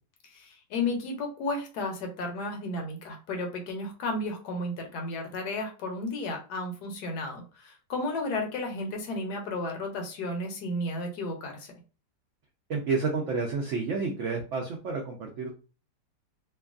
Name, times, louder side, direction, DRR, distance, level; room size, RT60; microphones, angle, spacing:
voice 1, 0.2-11.7, left 2 dB, 75° left, 3 dB, 1.3 m, -33 dB
voice 2, 12.7-15.5, right 4 dB, 80° right, 1 dB, 0.6 m, -30 dB
3.0 x 2.3 x 2.4 m, 0.35 s
omnidirectional pair, 1.8 m